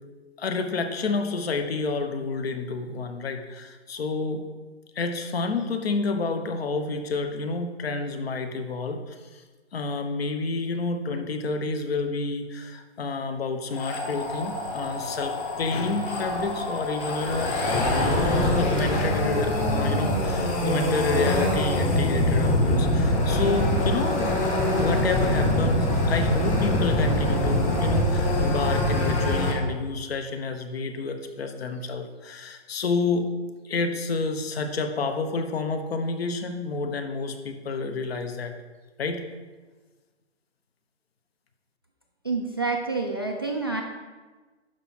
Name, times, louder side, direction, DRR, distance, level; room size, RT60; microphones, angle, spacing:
voice 1, 0.4-4.4 4.9-9.4 9.7-17.5 18.6-24.4 24.8-33.3 33.6-38.5 39.0-39.2, left 3 dB, 60° left, 7 dB, 1.2 m, -29 dB
sound 1, 13.7-29.5, left 1 dB, 20° left, 1.0 m, -24 dB
voice 2, 42.2-43.8, right 3 dB, 25° right, 1 dB, 0.3 m, -28 dB
11.5 x 4.8 x 4.3 m, 1.3 s
hypercardioid pair, 155°, 34 cm